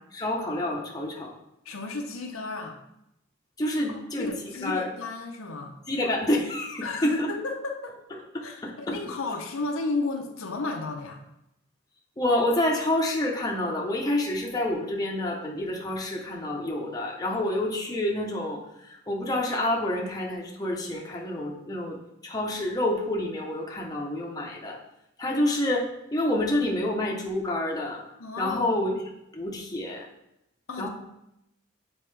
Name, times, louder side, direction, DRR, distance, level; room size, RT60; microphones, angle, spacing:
voice 1, 0.1-1.3 3.6-4.3 4.6-4.9 5.9-7.3 8.3-9.0 12.2-24.8 25.2-28.0 28.4-28.9 29.3-30.1 30.8-30.9, left 1 dB, 20° left, -2 dB, 0.9 m, -28 dB
voice 2, 1.6-2.8 3.9-5.7 6.8-8.0 8.4-11.2 28.2-28.6 30.7-30.9, left 3 dB, 80° left, 2 dB, 0.8 m, -33 dB
7.5 x 4.4 x 3.3 m, 0.84 s
head